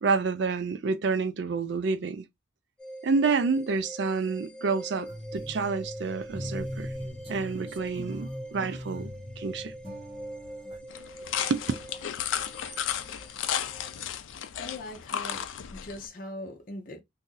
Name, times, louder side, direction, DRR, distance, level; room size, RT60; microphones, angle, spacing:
voice 1, 0.0-2.2 3.0-6.9 7.3-9.7 11.5-11.6, right 4 dB, 65° right, 0.4 m, -28 dB
sound 1, 2.8-14.0, right 1 dB, 5° left, 0.7 m, -44 dB
sound 2, 5.1-10.8, equal, 30° right, 1.2 m, -40 dB
sound 3, 10.9-16.1, left 9 dB, 85° left, 0.4 m, -34 dB
voice 2, 14.6-17.0, left 1 dB, 45° left, 0.6 m, -41 dB
2.7 x 2.5 x 3.8 m
head